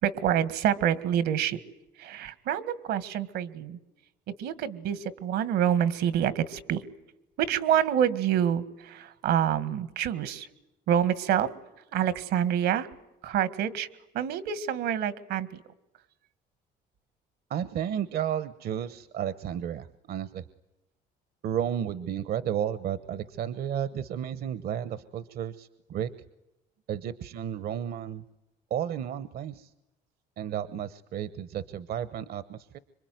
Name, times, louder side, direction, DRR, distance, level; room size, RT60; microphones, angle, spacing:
voice 1, 0.0-1.6 2.0-3.8 4.4-6.8 7.4-10.5 10.9-11.5 11.9-12.9 13.2-13.9 14.1-15.6, right 9 dB, 80° right, 15 dB, 1.9 m, -27 dB
voice 2, 17.5-20.4 21.4-26.1 26.9-28.2 28.7-29.7 30.4-32.8, right 9 dB, 65° right, 15 dB, 1.0 m, -32 dB
26.0 x 23.5 x 9.4 m, 0.95 s
cardioid pair, 110°, 17 cm